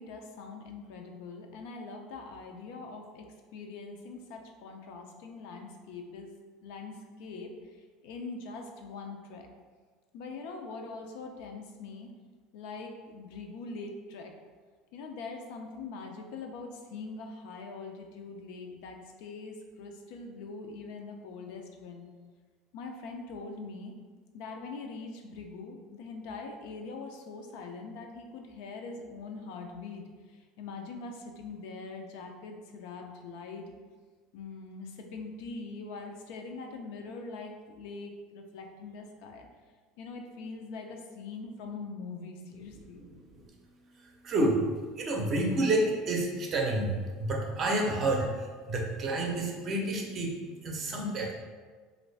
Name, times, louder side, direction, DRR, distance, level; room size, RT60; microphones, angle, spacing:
voice 1, 0.0-3.3 3.5-9.5 10.1-12.1 12.5-14.3 14.9-22.1 22.7-23.9 24.3-33.7 34.3-39.5 40.0-43.1, left 4 dB, 70° left, 3 dB, 0.4 m, -43 dB
voice 2, 43.0-51.3, right 1 dB, 30° right, 0 dB, 0.5 m, -30 dB
3.1 x 2.5 x 3.3 m, 1.5 s
cardioid pair, 155°, 0 cm